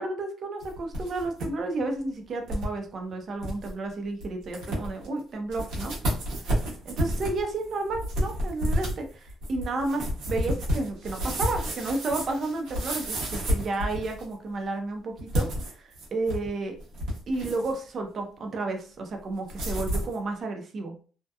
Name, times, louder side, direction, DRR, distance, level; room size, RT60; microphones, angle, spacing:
voice 1, 0.0-5.9 6.4-6.6 6.9-16.8 17.3-20.9, right 2 dB, 45° right, 4 dB, 0.6 m, -32 dB
sound 1, 0.6-1.5 1.8-1.9 2.5-2.7 3.1-3.2 3.4-3.7 4.2-4.3 4.5-5.1 5.5-14.3 15.2-16.5 16.8-17.8 19.5-20.1, equal, 90° right, 1.2 m, -30 dB
2.7 x 2.1 x 2.3 m, 0.39 s
cardioid pair, 115°, 0 cm